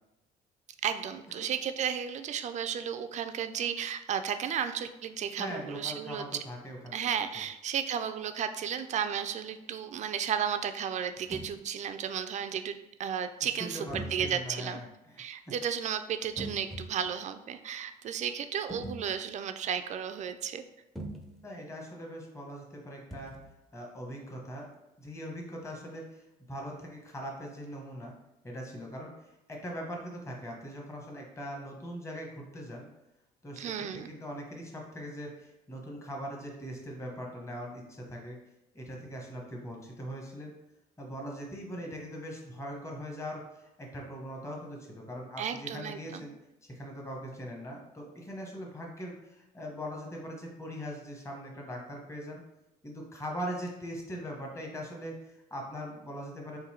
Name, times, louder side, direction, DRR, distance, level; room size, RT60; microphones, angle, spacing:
voice 1, 0.8-6.3 6.9-14.8 15.2-20.6 33.6-34.1 45.4-46.2, right 8 dB, 45° right, 9 dB, 0.4 m, -33 dB
voice 2, 5.4-7.0 13.6-15.2 21.4-23.3 23.7-24.7 25.0-26.2 26.5-28.1 28.4-32.9 33.4-38.4 38.7-40.5 41.0-46.3 46.6-52.4 52.8-56.6, equal, 15° left, -1 dB, 1.1 m, -41 dB
sound 1, 11.2-11.6 13.9-14.4 16.2-17.1 18.7-19.3 21.0-21.4 23.1-23.5, right 1 dB, ahead, 0.6 m, -41 dB
3.8 x 2.6 x 4.3 m, 0.93 s
cardioid pair, 110°, 17 cm